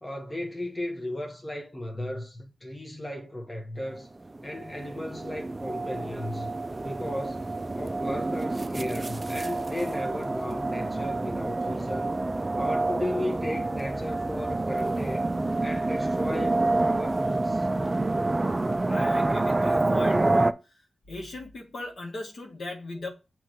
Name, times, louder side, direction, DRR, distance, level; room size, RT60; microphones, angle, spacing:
voice 1, 0.0-4.1 4.4-6.5 6.8-12.1 12.5-15.4 15.6-17.7, left 1 dB, 15° left, 1.1 m, -35 dB
sound 1, 4.3-20.5, right 2 dB, 25° right, 0.4 m, -28 dB
voice 2, 18.8-20.8 21.1-23.1, left 2 dB, 60° left, 1.6 m, -38 dB
7.4 x 3.1 x 4.6 m
wide cardioid pair, 110°, 0 cm